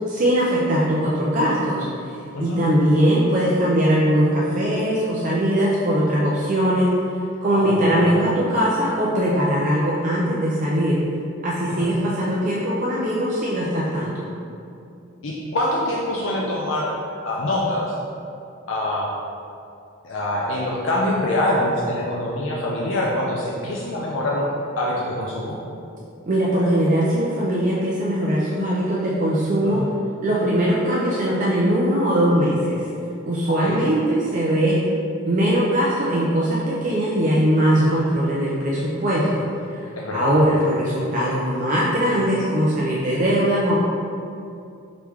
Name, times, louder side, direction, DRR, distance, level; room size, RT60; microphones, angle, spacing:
voice 1, 0.1-1.8 2.4-6.9 7.4-10.9 11.4-14.3 26.3-29.8 30.2-32.8 33.2-34.8 35.2-39.4 39.7-43.8, equal, 40° right, -6 dB, 0.5 m, -20 dB
voice 2, 7.5-8.1 11.7-11.9 15.2-16.9 17.2-17.9 18.7-19.1 20.0-24.5 24.8-25.6 29.6-29.9 33.5-33.8 37.7-38.0 40.0-40.3, left 1 dB, 65° left, -4 dB, 0.5 m, -25 dB
4.9 x 3.1 x 3.5 m, 2.5 s
head